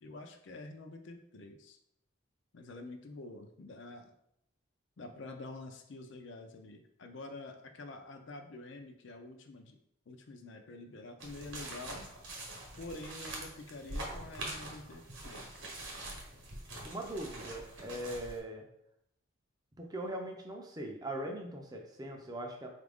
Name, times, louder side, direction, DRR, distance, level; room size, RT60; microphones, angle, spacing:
voice 1, 0.0-1.8 2.5-4.1 5.0-9.8 10.1-12.1 12.8-15.7, left 2 dB, 60° left, 5 dB, 0.4 m, -47 dB
sound 1, 11.2-18.4, right 1 dB, 60° right, 0.9 m, -44 dB
voice 2, 16.8-18.6 19.8-22.7, right 1 dB, 20° right, 1 dB, 0.4 m, -40 dB
3.9 x 2.4 x 3.4 m, 0.76 s
head